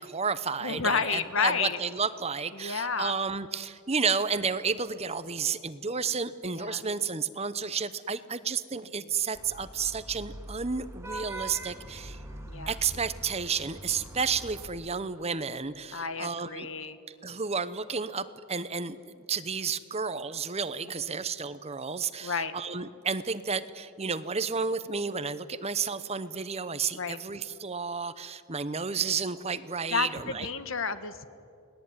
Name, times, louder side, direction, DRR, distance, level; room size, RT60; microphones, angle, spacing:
voice 1, 0.0-12.2 12.7-16.7 17.2-30.5, right 5 dB, 30° right, 13 dB, 0.9 m, -32 dB
voice 2, 0.6-1.8 2.5-3.1 6.5-6.8 12.5-12.8 15.9-17.0 21.0-21.2 22.2-22.5 26.9-27.2 29.9-31.2, left 5 dB, 60° left, 12 dB, 1.5 m, -31 dB
Vehicle horn car horn honking / Traffic noise roadway noise, 9.3-14.7, right 1 dB, 15° right, 2.3 m, -42 dB
29.5 x 19.5 x 9.6 m, 2.5 s
head